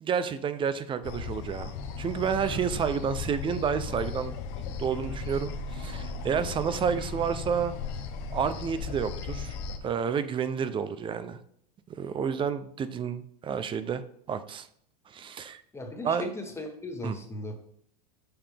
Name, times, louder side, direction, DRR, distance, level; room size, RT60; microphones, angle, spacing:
voice 1, 0.0-7.7 8.3-9.6 9.8-11.4 12.0-14.0 14.3-14.7 15.1-15.6 16.0-16.3 17.0-17.2, right 7 dB, 25° right, 12 dB, 0.5 m, -30 dB
sound 1, 1.0-9.8, left 5 dB, 55° left, 0.9 m, -36 dB
voice 2, 15.7-17.5, left 1 dB, 15° left, 3 dB, 1.3 m, -37 dB
6.9 x 5.7 x 3.4 m, 0.68 s
hypercardioid pair, 110°, 21 cm